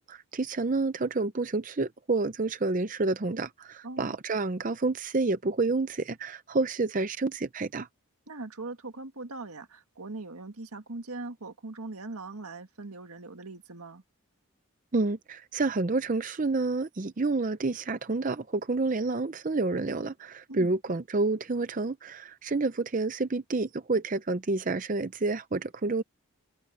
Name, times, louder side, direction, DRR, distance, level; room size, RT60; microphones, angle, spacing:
voice 1, 0.0-7.9 14.9-26.0, right 3 dB, 35° right, 0.5 m, -29 dB
voice 2, 3.8-4.2 8.3-14.0 20.5-20.7, right 3 dB, 85° right, 1.9 m, -40 dB
head